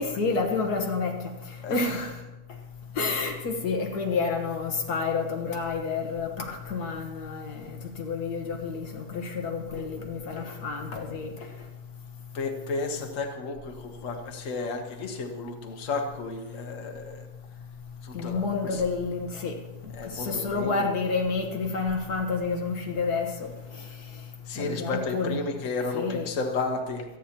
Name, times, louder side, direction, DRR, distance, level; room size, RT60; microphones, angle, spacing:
voice 1, 0.0-2.2 3.0-11.5 18.1-19.6 20.1-23.9 24.6-25.4 25.9-26.3, left 4 dB, 80° left, 1.9 m, -29 dB
voice 2, 12.3-17.3 18.0-18.4 18.7-18.8 20.0-20.7 24.5-27.0, left 3 dB, 55° left, 1.6 m, -32 dB
27.5 x 9.2 x 3.0 m
omnidirectional pair, 1.7 m